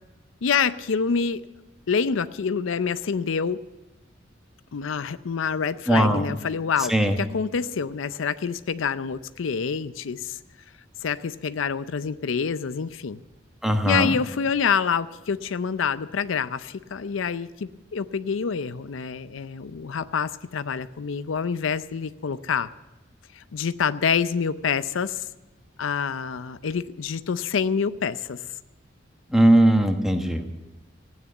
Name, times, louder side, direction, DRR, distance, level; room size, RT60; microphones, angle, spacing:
voice 1, 0.4-1.4 1.9-3.6 4.7-10.4 11.0-13.2 13.8-22.7 23.4-25.3 25.8-28.4, left 6 dB, 90° left, 14 dB, 0.5 m, -27 dB
voice 2, 5.9-6.2 6.9-7.2 13.6-14.1 29.3-30.4, right 1 dB, ahead, 4 dB, 1.2 m, -19 dB
15.5 x 9.4 x 8.3 m, 1.0 s
head